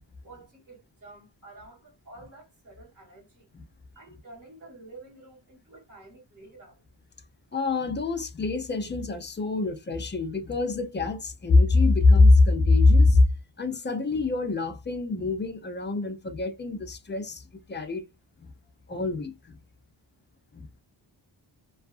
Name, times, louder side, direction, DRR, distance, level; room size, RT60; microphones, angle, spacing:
voice 1, 0.2-3.5 3.9-6.9, right 2 dB, 30° right, 1.6 m, -49 dB
voice 2, 7.5-13.3 13.6-18.0 18.4-18.5 18.9-19.6 20.5-20.7, left 3 dB, 25° left, 0.4 m, -23 dB
2.7 x 2.4 x 2.3 m
wide cardioid pair, 155°, 46 cm